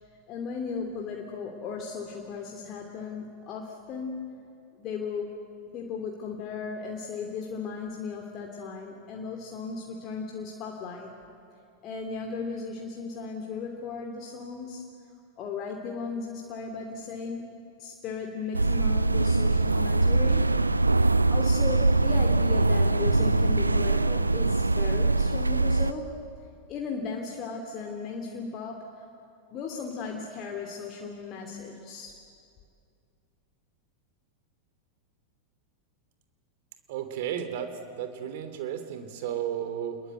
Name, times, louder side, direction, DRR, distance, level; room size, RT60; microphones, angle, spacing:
voice 1, 0.3-4.5 4.8-5.4 5.7-11.1 11.8-14.9 15.4-17.5 17.8-20.6 21.3-26.2 26.7-29.1 29.5-32.2, left 5 dB, 35° left, 1 dB, 2.9 m, -36 dB
sound 1, 18.5-25.9, right 2 dB, 80° right, 0.7 m, -23 dB
voice 2, 36.9-40.0, right 9 dB, 50° right, 9 dB, 3.1 m, -33 dB
29.0 x 21.5 x 9.2 m, 2.4 s
figure-of-eight pair, 90°, 0 cm